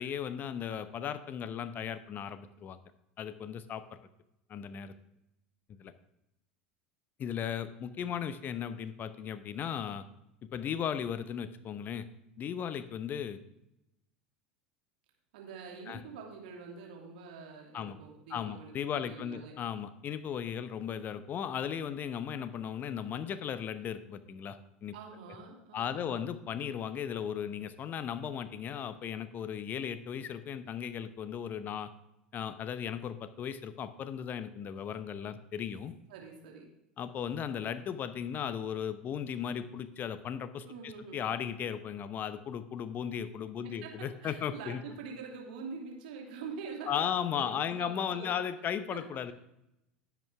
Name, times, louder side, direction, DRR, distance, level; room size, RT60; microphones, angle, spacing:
voice 1, 0.0-2.8 3.2-4.0 4.5-4.9 5.8-5.9 7.2-10.0 10.4-12.1 12.4-13.4 15.9-16.0 17.7-18.0 18.3-24.9 25.7-31.9 32.3-35.9 37.0-44.8 46.9-49.3, left 8 dB, 35° left, 13 dB, 0.8 m, -36 dB
voice 2, 15.3-19.5 24.9-26.3 36.1-36.7 40.6-41.2 43.6-48.4 48.9-49.0, right 5 dB, 65° right, 0 dB, 2.7 m, -45 dB
10.5 x 8.1 x 3.5 m, 0.86 s
figure-of-eight pair, 75°, 5 cm